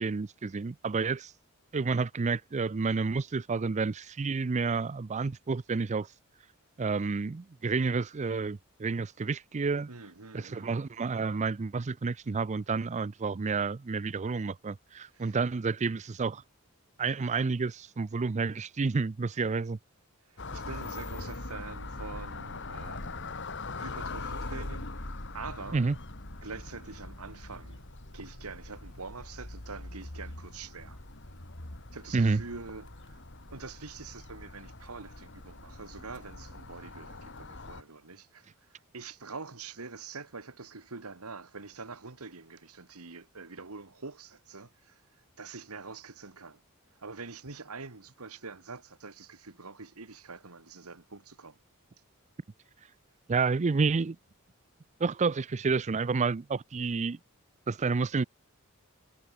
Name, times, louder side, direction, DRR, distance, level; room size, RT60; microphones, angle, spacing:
voice 1, 0.0-1.3 1.7-6.1 6.8-9.9 10.3-16.4 17.0-19.8 25.7-25.9 32.1-32.4 53.3-54.2 55.0-57.2 57.7-58.2, right 4 dB, 30° right, 0.4 m, -30 dB
voice 2, 9.9-10.8 15.1-15.4 20.3-23.4 23.7-25.8 26.4-27.8 28.1-31.0 31.9-33.2 33.5-45.0 45.4-46.6 46.9-51.6, right 4 dB, 90° right, 1.8 m, -45 dB
sound 1, 20.4-37.8, left 2 dB, 55° left, 3.1 m, -42 dB
head